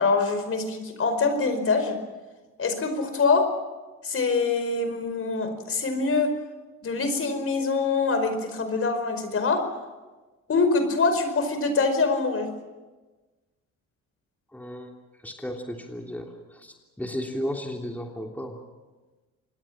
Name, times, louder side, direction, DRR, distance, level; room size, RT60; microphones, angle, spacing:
voice 1, 0.0-2.0 2.6-3.5 4.0-6.3 6.8-9.6 10.5-12.5, left 4 dB, 45° left, 8 dB, 5.0 m, -24 dB
voice 2, 14.5-14.9 15.2-18.6, equal, 5° left, 1 dB, 3.1 m, -34 dB
26.5 x 21.0 x 7.4 m, 1.2 s
cardioid pair, 90°, 30 cm